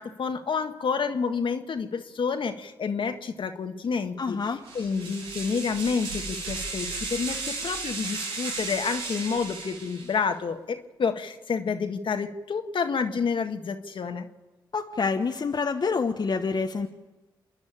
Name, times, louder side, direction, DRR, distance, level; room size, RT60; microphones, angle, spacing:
voice 1, 0.0-4.4 4.7-14.3, left 5 dB, 65° left, 6 dB, 1.7 m, -29 dB
voice 2, 4.2-4.6 14.7-16.9, left 4 dB, 50° left, 4 dB, 1.2 m, -27 dB
sound 1, 4.6-10.2, right 3 dB, 85° right, 3.4 m, -34 dB
28.0 x 10.5 x 8.8 m, 1.2 s
supercardioid pair, 45°, 9 cm